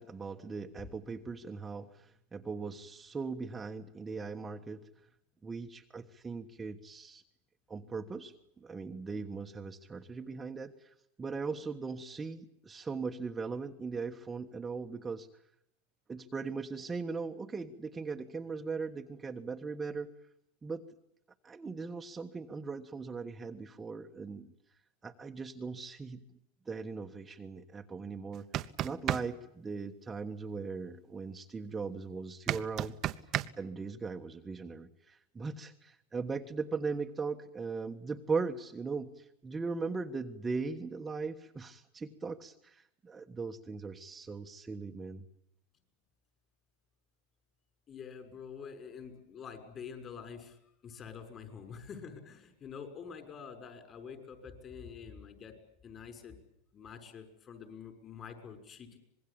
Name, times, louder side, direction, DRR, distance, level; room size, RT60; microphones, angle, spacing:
voice 1, 0.0-4.8 5.4-7.2 7.7-8.3 8.6-15.3 16.1-20.1 20.6-20.8 21.4-24.5 25.0-26.2 26.7-28.4 28.8-32.9 33.6-45.2, right 4 dB, 15° right, 4 dB, 1.4 m, -39 dB
sound 1, 28.3-29.2 32.5-33.5, right 13 dB, 40° right, 1.1 m, -32 dB
voice 2, 47.9-50.5 50.8-55.5 55.8-56.4 56.7-59.0, left 6 dB, 30° left, 7 dB, 6.2 m, -47 dB
25.5 x 21.5 x 8.7 m, 0.77 s
supercardioid pair, 120°, 0 cm